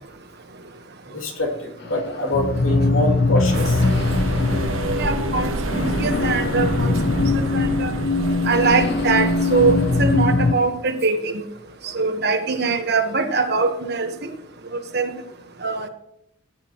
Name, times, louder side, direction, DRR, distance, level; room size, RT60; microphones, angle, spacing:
voice 1, 1.1-3.8, left 1 dB, 80° left, 2 dB, 2.8 m, -25 dB
sound 1, 1.8-10.5, left 3 dB, 55° left, 0.7 m, -21 dB
sound 2, 3.5-10.5, right 2 dB, 80° right, 1.3 m, -29 dB
voice 2, 5.0-7.2 7.5-7.9 8.4-11.4 11.9-14.1 14.9-15.1 15.6-15.9, right 4 dB, 55° right, 6 dB, 1.4 m, -22 dB
17.0 x 9.5 x 3.1 m, 0.78 s
head